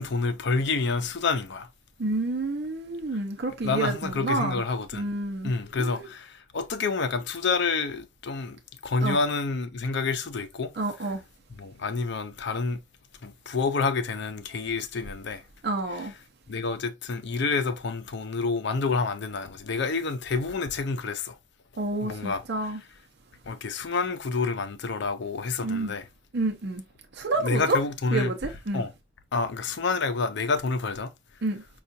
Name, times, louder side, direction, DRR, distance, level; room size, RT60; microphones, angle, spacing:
voice 1, 0.0-1.7 3.6-5.1 5.4-10.7 11.6-12.8 13.2-15.4 16.0-16.1 16.5-21.4 22.0-22.7 23.5-26.1 27.4-28.3 28.7-28.9 29.3-31.1, left 4 dB, 65° left, 0.6 m, -28 dB
voice 2, 2.0-4.6 4.9-5.5 5.8-6.1 9.0-9.2 10.8-11.2 15.6-16.1 21.8-22.8 25.6-25.9 26.3-26.8 27.2-27.8 28.1-28.8 31.4-31.6, right 2 dB, 60° right, 0.7 m, -29 dB
5.5 x 2.4 x 2.6 m
head